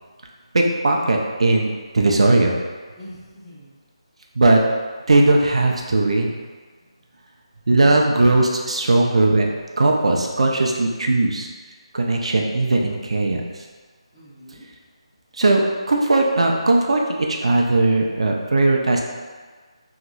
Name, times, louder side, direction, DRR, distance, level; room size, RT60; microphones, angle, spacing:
voice 1, 0.5-2.6 4.4-4.6 5.1-6.3 7.7-11.5 11.9-13.4 15.4-15.6 15.9-19.0, right 2 dB, 70° right, 0 dB, 0.4 m, -18 dB
voice 2, 3.0-3.8 14.1-14.6, equal, 10° left, -13 dB, 0.8 m, -43 dB
2.9 x 2.8 x 2.5 m, 1.5 s
figure-of-eight pair, 160°, 3 cm